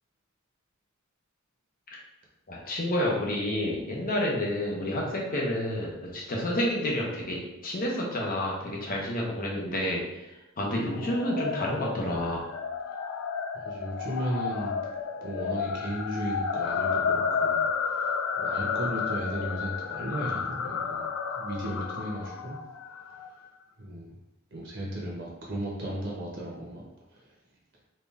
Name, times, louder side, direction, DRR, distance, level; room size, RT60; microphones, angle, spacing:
voice 1, 2.5-12.4, left 1 dB, 45° left, -2 dB, 1.0 m, -29 dB
sound 1, 10.9-23.3, left 6 dB, 65° left, 0.4 m, -31 dB
voice 2, 13.5-14.7 15.2-21.0 21.3-22.6 23.8-24.2 24.5-26.8 27.1-27.3, equal, 60° right, -3 dB, 1.0 m, -35 dB
4.3 x 2.6 x 3.4 m, 0.95 s
head